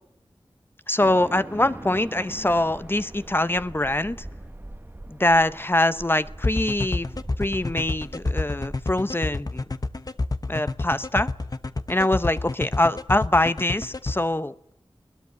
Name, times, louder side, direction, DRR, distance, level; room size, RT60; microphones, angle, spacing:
voice 1, 0.9-4.2 5.1-7.1 7.4-9.6 10.5-11.3 11.9-14.5, left 1 dB, 25° left, 13 dB, 0.9 m, -23 dB
sound 1, 1.0-9.5, right 1 dB, 20° right, 1.3 m, -42 dB
sound 2, 6.4-14.1, left 2 dB, 40° left, 1.1 m, -28 dB
21.0 x 19.5 x 9.6 m, 0.79 s
wide cardioid pair, 65°, 9 cm